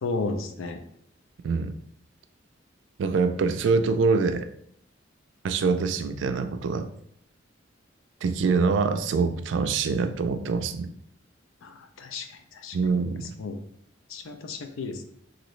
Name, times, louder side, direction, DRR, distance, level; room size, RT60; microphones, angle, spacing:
voice 1, 0.0-0.8 11.6-12.3 12.6-12.8 13.4-13.6 14.1-15.0, left 3 dB, 90° left, 6 dB, 0.4 m, -33 dB
voice 2, 3.0-4.5 5.4-6.9 8.2-10.9 12.7-13.2, right 4 dB, 70° right, 9 dB, 0.3 m, -24 dB
2.9 x 2.6 x 3.1 m, 0.71 s
head